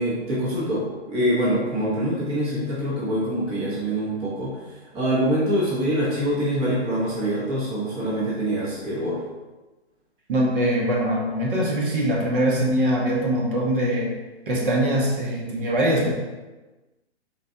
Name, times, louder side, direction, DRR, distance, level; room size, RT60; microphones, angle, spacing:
voice 1, 0.0-4.5 4.9-9.2, equal, 15° right, -7 dB, 0.8 m, -24 dB
voice 2, 10.3-14.1 14.5-16.1, right 1 dB, 50° right, -3 dB, 0.9 m, -22 dB
4.0 x 2.2 x 2.7 m, 1.2 s
hypercardioid pair, 135°, 34 cm